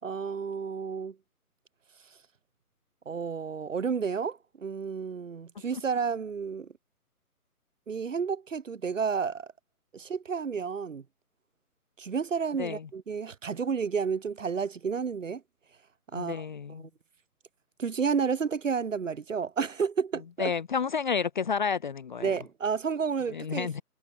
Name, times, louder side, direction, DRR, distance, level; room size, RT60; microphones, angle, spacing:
voice 1, 0.0-1.2 3.1-6.7 7.9-9.5 9.9-11.0 12.0-15.4 16.1-16.5 16.8-16.9 17.8-20.5 22.2-23.8, right 6 dB, 55° right, 5.5 m, -31 dB
voice 2, 12.6-12.9 16.1-16.9 20.4-22.3 23.3-23.8, left 6 dB, 30° left, 1.1 m, -30 dB
figure-of-eight pair, 155°, 46 cm